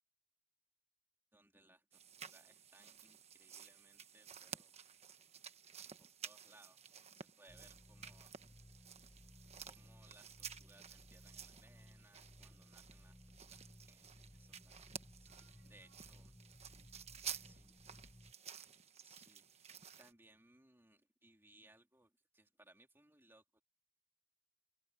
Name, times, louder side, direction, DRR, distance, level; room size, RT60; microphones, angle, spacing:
voice 1, 1.3-4.7 6.0-6.8 7.1-8.3 9.6-13.6 13.9-14.9 15.2-15.3 15.6-16.3 17.4-17.7 19.0-19.5 20.0-23.6, right 2 dB, 10° right, 3.1 m, -67 dB
sound 1, 1.9-20.1, right 7 dB, 30° right, 1.3 m, -53 dB
sound 2, 7.5-18.3, left 1 dB, 10° left, 0.7 m, -61 dB
voice 2, 15.3-17.7, right 4 dB, 70° right, 6.2 m, -78 dB
head